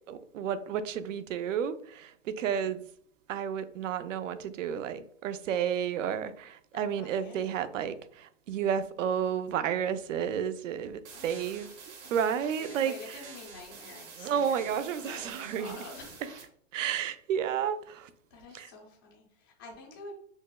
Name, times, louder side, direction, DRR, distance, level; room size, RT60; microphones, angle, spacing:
voice 1, 0.1-2.8 3.3-11.7 12.1-13.2 14.2-15.8 16.7-18.1 18.5-18.7, right 8 dB, 80° right, 0.5 m, -31 dB
voice 2, 6.7-7.4 11.1-11.8 12.5-16.3 18.3-20.1, left 3 dB, 20° left, 0.3 m, -48 dB
sound 1, 11.0-16.4, right 5 dB, 60° right, 1.0 m, -48 dB
6.0 x 2.0 x 2.2 m
hypercardioid pair, 160°, 38 cm